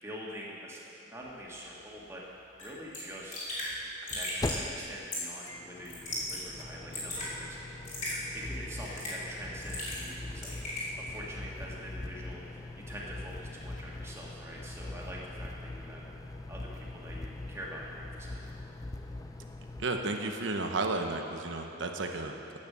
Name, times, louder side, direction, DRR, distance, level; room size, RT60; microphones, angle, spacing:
voice 1, 0.0-3.3 4.0-7.8 8.3-10.6 11.0-16.1 16.5-18.7, equal, 15° right, -4 dB, 1.8 m, -45 dB
sound 1, 1.3-1.4 1.6-1.7 3.6-19.9, left 2 dB, 20° left, 0.4 m, -42 dB
Raindrop / Drip, 2.6-2.7 2.9-3.0 3.3-3.7 4.1-4.6 5.1-5.4 5.9-6.4 6.7-7.3 7.9-8.2 8.8-9.2 9.6-10.1 10.4-10.9, left 1 dB, 40° left, 3.2 m, -36 dB
voice 2, 19.8-22.6, right 3 dB, 70° right, 4 dB, 0.9 m, -33 dB
9.9 x 8.5 x 6.9 m, 2.8 s
head